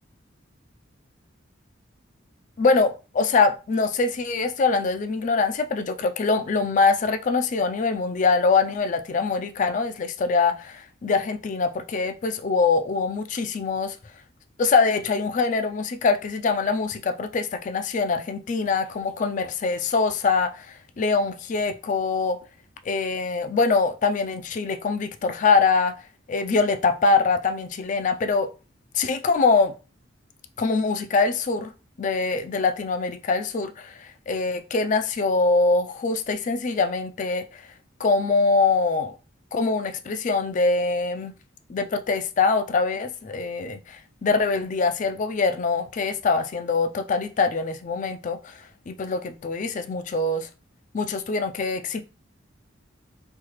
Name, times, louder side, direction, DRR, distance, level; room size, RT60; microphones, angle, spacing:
voice 1, 2.6-14.0 14.6-22.4 22.9-26.0 26.3-28.5 28.9-29.7 30.6-31.7 32.0-37.6 38.0-39.1 39.5-41.3 41.7-48.5 48.9-50.5 50.9-52.0, left 4 dB, 40° left, 0.4 m, -23 dB
3.2 x 2.3 x 3.0 m
head